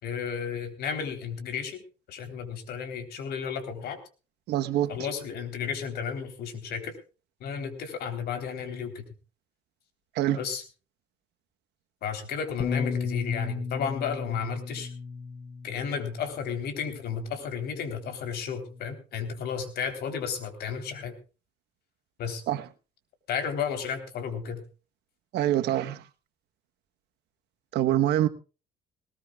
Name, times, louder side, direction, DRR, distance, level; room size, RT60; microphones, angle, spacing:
voice 1, 0.0-1.8 2.1-4.0 4.9-6.9 7.4-9.1 10.4-10.6 12.0-14.9 15.6-21.1 22.2-22.4 23.3-24.6, left 7 dB, 70° left, 3.7 m, -33 dB
voice 2, 4.5-4.9 10.1-10.4 22.5-22.6 25.3-26.0 27.7-28.3, right 12 dB, 80° right, 1.2 m, -25 dB
Bass guitar, 12.6-17.1 17.9-18.8, left 5 dB, 40° left, 1.3 m, -35 dB
19.5 x 19.5 x 2.4 m
cardioid pair, 110°, 17 cm